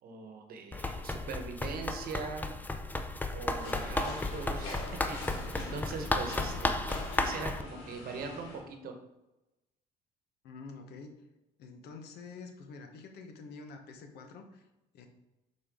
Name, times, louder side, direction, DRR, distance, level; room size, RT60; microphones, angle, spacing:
voice 1, 0.0-2.5 3.3-5.2 5.6-6.8 7.2-8.9, right 4 dB, 60° right, 5 dB, 1.1 m, -41 dB
Run, 0.7-7.6, left 2 dB, 10° left, 0.4 m, -34 dB
sound 1, 3.5-8.6, left 2 dB, 90° left, 1.4 m, -44 dB
voice 2, 10.4-11.1 11.6-14.7 14.9-15.1, left 4 dB, 75° left, 5 dB, 0.9 m, -47 dB
6.4 x 4.3 x 3.6 m, 0.99 s
cardioid pair, 110°, 17 cm